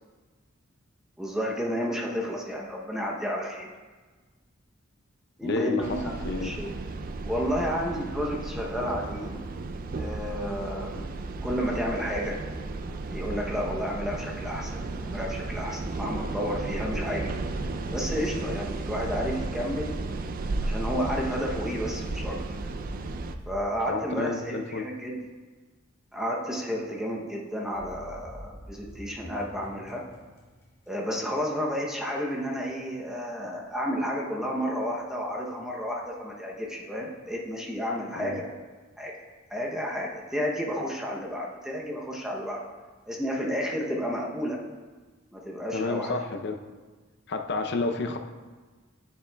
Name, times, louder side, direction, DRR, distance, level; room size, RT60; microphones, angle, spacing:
voice 1, 1.2-3.7 5.4-6.8 7.2-9.4 10.0-11.1 11.4-12.4 13.1-17.3 17.9-20.0 20.6-22.4 23.5-25.2 26.1-30.0 30.9-38.5 39.0-39.1 39.5-42.6 43.1-44.6 45.3-46.2, equal, 5° right, -2 dB, 0.7 m, -31 dB
voice 2, 5.4-6.0 6.2-6.5 23.9-24.9 38.2-38.4 45.7-46.6 47.3-48.2, left 3 dB, 55° left, 5 dB, 0.5 m, -30 dB
sound 1, 5.8-23.3, right 3 dB, 45° right, 0.4 m, -34 dB
sound 2, 21.7-24.7 27.7-31.2, equal, 15° left, 1.7 m, -46 dB
9.8 x 6.9 x 2.2 m, 1.4 s
head